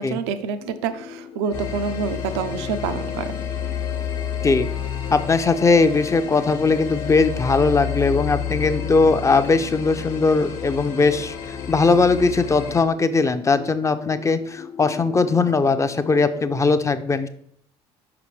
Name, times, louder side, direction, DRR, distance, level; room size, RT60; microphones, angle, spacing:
voice 1, 0.0-3.4, right 6 dB, 80° right, 10 dB, 0.5 m, -27 dB
sound 1, 0.6-16.6, left 8 dB, 80° left, 0.6 m, -39 dB
sound 2, 1.4-8.1, left 6 dB, 35° left, 0.8 m, -37 dB
sound 3, 1.5-12.8, left 8 dB, 60° left, 1.1 m, -31 dB
voice 2, 5.1-17.3, left 4 dB, 20° left, 10 dB, 0.5 m, -19 dB
5.9 x 5.0 x 3.2 m, 0.67 s
hypercardioid pair, 70°, 14 cm